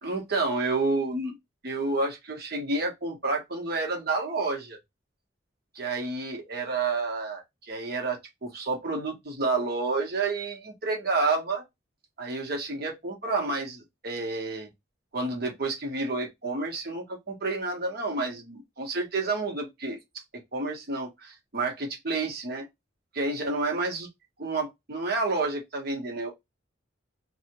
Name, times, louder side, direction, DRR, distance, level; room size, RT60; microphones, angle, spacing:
voice 1, 0.0-1.3 1.6-4.8 5.7-11.6 12.2-14.7 15.1-20.0 20.5-22.6 23.1-24.1 24.4-26.3, right 3 dB, 55° right, 1.1 m, -30 dB
2.7 x 2.4 x 2.9 m
head